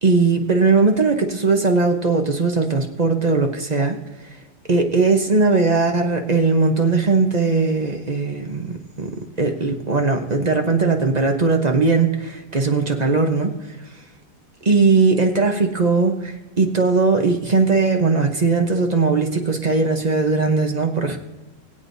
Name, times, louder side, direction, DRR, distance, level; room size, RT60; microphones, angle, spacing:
voice 1, 0.0-4.0 4.7-9.1 9.4-13.6 14.6-21.2, right 4 dB, 35° right, 3 dB, 0.7 m, -19 dB
21.5 x 8.3 x 2.7 m, 1.2 s
omnidirectional pair, 2.0 m